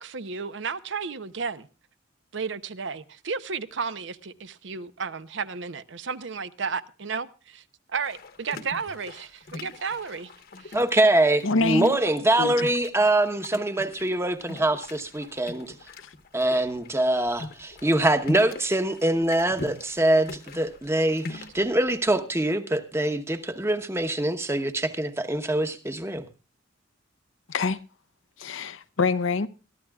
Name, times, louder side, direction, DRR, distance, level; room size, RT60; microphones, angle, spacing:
voice 1, 0.0-1.7 2.3-7.6 7.9-10.3 10.6-10.8, right 5 dB, 65° right, 0.7 m, -33 dB
sound 1, 8.0-22.2, left 2 dB, 50° left, 1.2 m, -41 dB
voice 2, 10.7-15.7 16.3-26.2, right 1 dB, 15° right, 1.0 m, -24 dB
voice 3, 11.4-12.0 12.4-12.7 27.5-27.8 28.4-29.5, left 3 dB, 90° left, 0.8 m, -25 dB
22.0 x 13.0 x 2.3 m
head